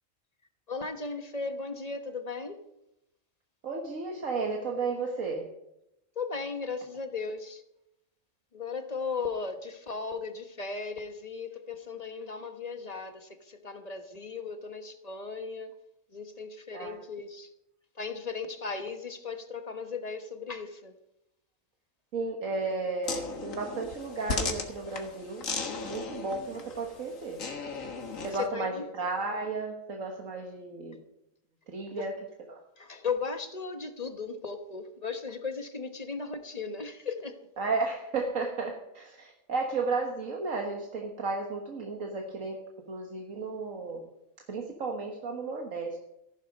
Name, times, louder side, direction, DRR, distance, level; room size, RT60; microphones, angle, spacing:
voice 1, 0.7-2.6 6.1-7.6 8.5-15.7 16.1-17.5 17.9-21.0 28.3-28.9 31.9-32.1 32.8-37.5, left 4 dB, 30° left, 1.1 m, -36 dB
voice 2, 3.6-5.5 16.7-17.0 22.1-25.5 25.8-27.4 28.2-31.0 31.7-32.2 32.5-32.6 37.6-44.0 44.5-46.0, right 3 dB, 80° right, 1.8 m, -33 dB
sound 1, 23.0-28.5, left 4 dB, 80° left, 2.0 m, -36 dB
14.5 x 11.5 x 5.3 m
omnidirectional pair, 1.3 m